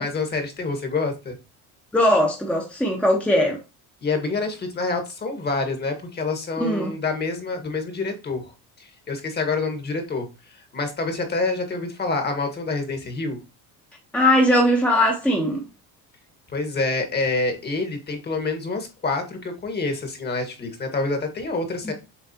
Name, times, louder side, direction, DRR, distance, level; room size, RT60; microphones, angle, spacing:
voice 1, 0.0-1.4 4.0-8.5 8.8-10.3 10.6-13.4 16.5-21.9, left 3 dB, 30° left, 1.8 m, -27 dB
voice 2, 1.9-3.6 6.6-6.9 14.1-15.6 21.8-21.9, left 1 dB, 5° left, 1.1 m, -19 dB
7.2 x 4.6 x 2.9 m
cardioid pair, 130°, 34 cm